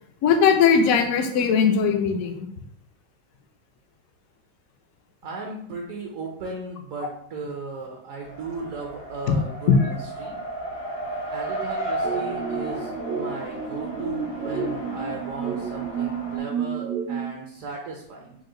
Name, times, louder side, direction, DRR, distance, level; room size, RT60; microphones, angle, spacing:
voice 1, 0.2-2.4 9.3-9.4 9.7-9.9, left 6 dB, 70° left, 5 dB, 0.8 m, -19 dB
voice 2, 5.2-10.4 11.3-18.4, right 3 dB, 65° right, 0 dB, 0.9 m, -36 dB
Race car auto racing, 8.2-16.4, right 1 dB, 85° left, 1.8 m, -34 dB
sound 1, 12.0-17.3, right 6 dB, 85° right, 1.3 m, -30 dB
4.8 x 2.1 x 3.8 m, 0.71 s
omnidirectional pair, 1.9 m